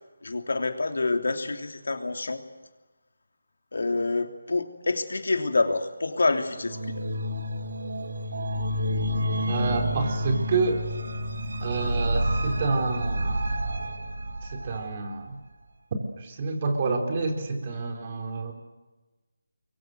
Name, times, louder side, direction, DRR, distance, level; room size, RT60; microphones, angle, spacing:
voice 1, 0.2-2.4 3.7-7.0, left 3 dB, 70° left, 6 dB, 3.1 m, -27 dB
sound 1, 6.6-14.9, equal, 65° right, 2.7 m, -29 dB
voice 2, 9.5-10.8 11.6-13.5 14.4-15.4 16.2-18.5, right 3 dB, 35° right, 4 dB, 4.1 m, -28 dB
25.0 x 23.0 x 8.0 m, 1.1 s
figure-of-eight pair, 160°, 0 cm